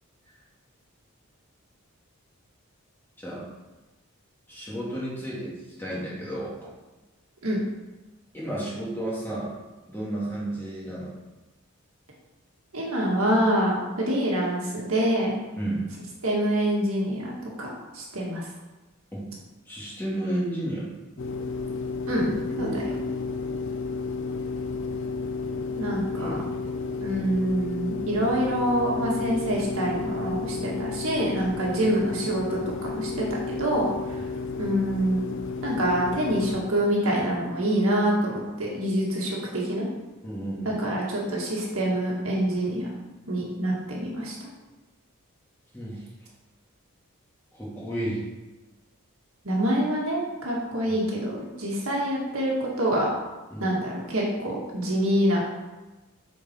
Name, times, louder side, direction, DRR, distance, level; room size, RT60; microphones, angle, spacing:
voice 1, 4.5-6.5 8.3-9.5 9.9-11.1 15.6-15.8 19.1-19.2 19.7-20.9 22.2-23.0 26.2-26.5 40.2-40.9 45.7-46.0 47.5-48.2 50.9-51.0 53.5-53.7, right 1 dB, 10° left, -7 dB, 2.3 m, -32 dB
voice 2, 12.7-15.4 16.2-17.3 17.6-18.5 22.1-22.3 22.6-22.9 25.7-26.4 27.0-34.2 34.6-35.2 35.6-39.9 40.6-42.9 43.3-44.5 49.4-53.1 53.6-55.4, right 1 dB, 75° right, -3 dB, 1.8 m, -26 dB
sound 1, 21.2-36.6, left 4 dB, 55° left, 0.6 m, -32 dB
7.2 x 4.6 x 4.5 m, 1.1 s
head